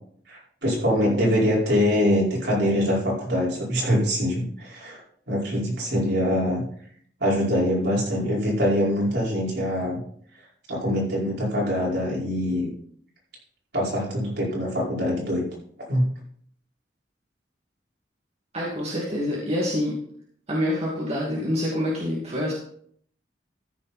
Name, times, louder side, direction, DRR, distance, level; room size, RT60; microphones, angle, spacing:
voice 1, 0.3-5.0 5.3-6.6 7.2-10.0 10.7-12.7 13.7-15.4 15.9-16.1, equal, 65° right, -4 dB, 4.9 m, -24 dB
voice 2, 18.5-19.9 20.5-22.5, left 1 dB, 35° right, -5 dB, 2.4 m, -26 dB
14.0 x 7.3 x 4.3 m, 0.63 s
head